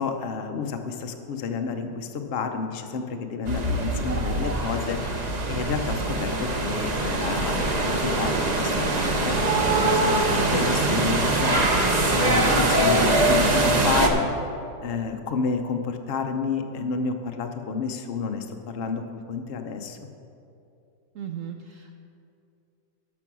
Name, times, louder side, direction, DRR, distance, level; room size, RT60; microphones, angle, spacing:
voice 1, 0.0-14.2 14.8-20.0, left 5 dB, 75° left, 5 dB, 0.5 m, -30 dB
sound 1, 3.4-14.1, right 2 dB, 45° right, 0.5 m, -23 dB
voice 2, 21.1-21.9, right 8 dB, 80° right, 5 dB, 0.7 m, -36 dB
12.0 x 6.0 x 6.1 m, 2.6 s
omnidirectional pair, 2.0 m